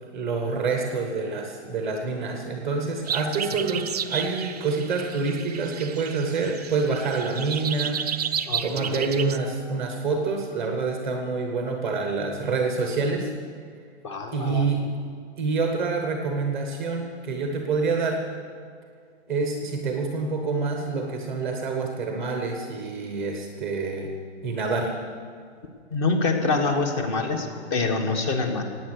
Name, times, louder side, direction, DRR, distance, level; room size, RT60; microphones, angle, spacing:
voice 1, 0.0-8.0 8.6-13.3 14.3-14.9 15.4-18.2 19.3-24.2 24.4-24.9, right 4 dB, ahead, 3 dB, 0.8 m, -27 dB
sound 1, 3.1-9.4, right 8 dB, 35° right, 0.4 m, -32 dB
voice 2, 8.5-9.1 14.0-14.7 25.9-28.6, left 3 dB, 25° left, 5 dB, 1.4 m, -26 dB
17.5 x 9.2 x 8.1 m, 2.1 s
hypercardioid pair, 175°, 34 cm